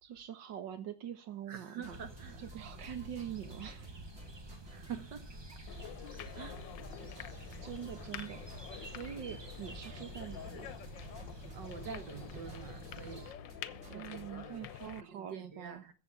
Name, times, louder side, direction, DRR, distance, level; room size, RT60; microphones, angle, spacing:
voice 1, 0.0-2.0 2.4-4.0 7.3-10.7 13.9-15.9, right 9 dB, 85° right, 2.0 m, -44 dB
sound 1, 1.5-14.4, left 1 dB, 35° right, 4.5 m, -56 dB
voice 2, 1.5-2.6 4.7-5.6 6.3-6.6 11.5-13.4 13.8-14.7 15.0-15.9, right 6 dB, 70° right, 2.4 m, -47 dB
sound 2, 1.9-13.3, right 1 dB, 15° right, 1.3 m, -49 dB
sound 3, 5.7-15.0, left 10 dB, 90° left, 1.6 m, -48 dB
14.5 x 7.7 x 5.7 m
omnidirectional pair, 1.9 m